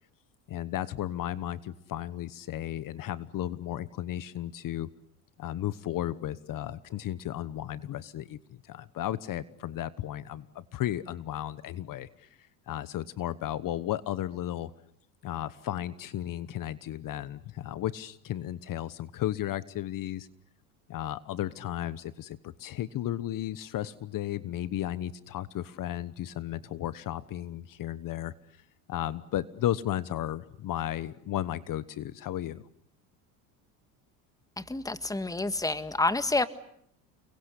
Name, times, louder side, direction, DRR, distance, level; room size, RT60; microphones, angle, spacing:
voice 1, 0.5-4.9 5.4-12.3 12.7-14.7 15.2-20.3 20.9-28.3 28.9-32.6, left 12 dB, 50° left, 16 dB, 1.2 m, -34 dB
voice 2, 34.6-36.5, left 2 dB, 10° left, 12 dB, 1.7 m, -28 dB
30.0 x 22.5 x 8.4 m, 0.71 s
supercardioid pair, 90°, 42 cm